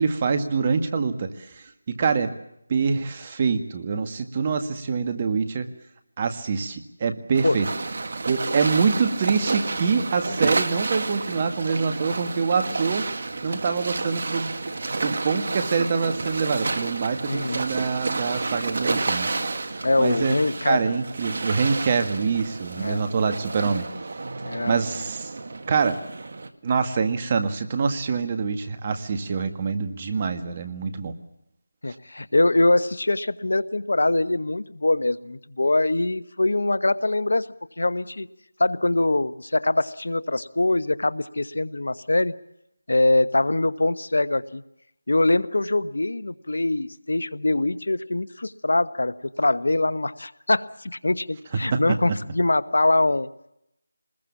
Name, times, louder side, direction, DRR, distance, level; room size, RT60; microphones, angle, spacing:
voice 1, 0.0-2.3 2.7-5.7 6.2-7.7 8.3-13.1 13.4-14.5 15.0-19.3 19.6-20.4 20.7-23.9 24.7-25.3 25.7-26.0 26.6-31.1 51.7-52.0, right 5 dB, 25° right, 7 dB, 1.8 m, -25 dB
sound 1, 7.3-26.5, right 3 dB, 50° right, 2.0 m, -30 dB
voice 2, 17.3-17.6 19.8-21.0 22.8-23.0 24.4-24.8 31.8-37.5 37.8-38.3 38.6-42.3 42.9-44.6 45.1-53.3, left 2 dB, 75° left, 15 dB, 1.1 m, -23 dB
25.5 x 21.0 x 7.3 m, 0.81 s
figure-of-eight pair, 170°, 0 cm